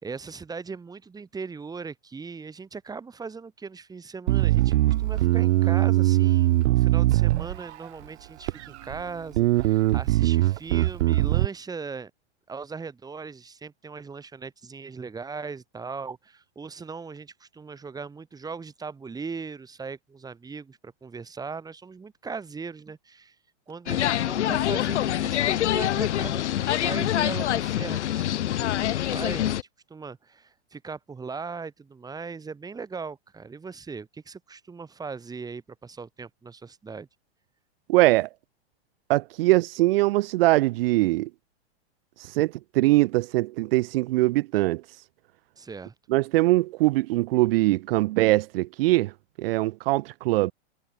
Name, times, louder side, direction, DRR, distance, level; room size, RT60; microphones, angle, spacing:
voice 1, 0.0-12.1 12.5-23.4 23.7-37.1 45.6-45.9, right 5 dB, 10° right, 2.9 m, -39 dB
Bass guitar, 4.3-7.9 8.5-9.0 9.3-11.5, right 16 dB, 80° right, 0.6 m, -21 dB
sound 1, 23.9-29.6, left 12 dB, 85° left, 1.2 m, -25 dB
voice 2, 37.9-38.3 39.1-41.3 42.2-44.8 46.1-49.1 49.4-50.5, right 19 dB, 60° right, 1.2 m, -22 dB
hypercardioid pair, 140°, 34 cm